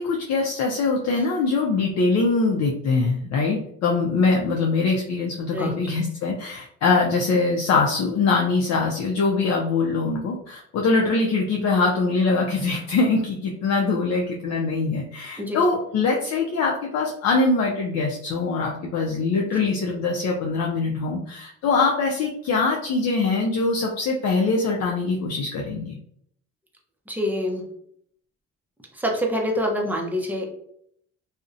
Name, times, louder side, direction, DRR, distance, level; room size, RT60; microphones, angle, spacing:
voice 1, 0.0-26.0, left 3 dB, 60° left, -1 dB, 0.5 m, -23 dB
voice 2, 27.1-27.6 28.9-30.5, equal, 5° right, 0 dB, 0.5 m, -25 dB
2.5 x 2.1 x 2.4 m, 0.69 s
cardioid pair, 90°, 30 cm